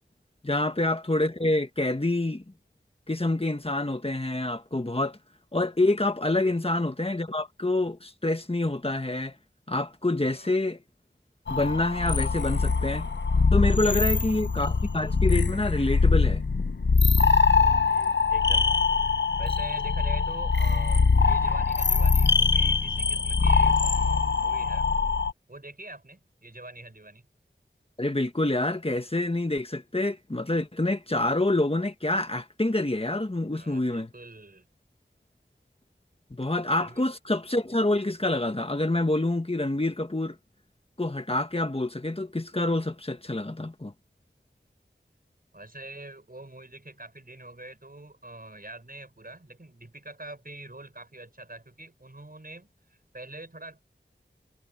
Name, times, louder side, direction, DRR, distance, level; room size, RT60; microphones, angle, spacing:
voice 1, 0.4-2.4 3.1-5.2 5.5-9.3 9.7-10.8 11.5-13.1 13.5-16.4 28.0-34.1 36.3-40.4 41.0-43.9, left 2 dB, 30° left, 1.6 m, -27 dB
voice 2, 10.3-10.6 13.9-14.3 17.8-19.0 19.4-24.9 25.5-27.3 33.5-34.7 36.8-37.1 45.5-53.8, right 2 dB, 50° right, 6.8 m, -45 dB
sound 1, 11.5-25.3, left 4 dB, 70° left, 0.9 m, -23 dB
wide cardioid pair, 45°, 19 cm